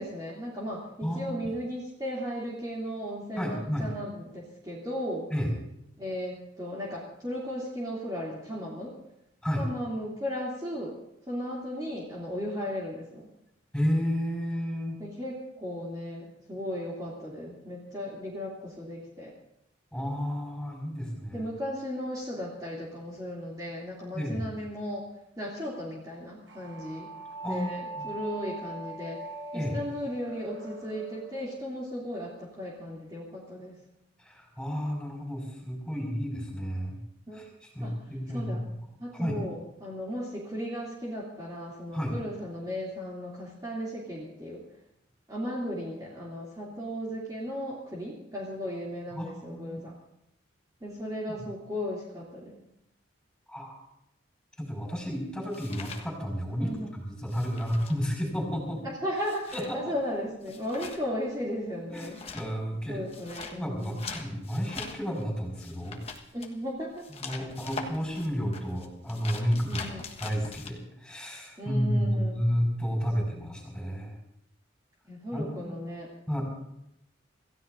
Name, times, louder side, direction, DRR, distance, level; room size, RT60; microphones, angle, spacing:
voice 1, 0.0-5.2 6.0-8.9 9.6-11.0 11.3-13.3 15.0-19.3 21.3-25.0 25.4-27.1 27.5-29.2 29.5-33.8 37.3-37.4 37.8-37.9 38.3-38.6 39.0-44.6 45.3-49.9 50.8-52.6 56.6-56.9 58.8-62.2 62.9-64.1 66.3-67.0 69.7-70.1 71.6-72.4 73.3-73.5 75.1-76.1, equal, 20° right, -6 dB, 2.8 m, -36 dB
voice 2, 1.0-1.4 3.4-3.9 5.3-5.5 9.4-9.6 13.7-15.0 19.9-21.5 24.1-24.5 27.4-27.7 28.0-28.1 29.5-29.8 34.2-37.0 37.3-38.7 39.1-39.4 41.9-42.1 49.1-49.8 53.5-53.8 54.6-58.8 59.5-59.9 61.9-63.0 63.6-66.0 67.2-69.9 70.2-74.1 75.3-75.7 76.3-76.4, equal, 5° left, 0 dB, 5.4 m, -31 dB
sound 1, 26.5-31.6, right 2 dB, 75° right, 1.1 m, -41 dB
sound 2, 54.6-56.8 57.0-70.7, left 4 dB, 30° left, 1.4 m, -43 dB
27.0 x 15.5 x 2.7 m, 0.80 s
head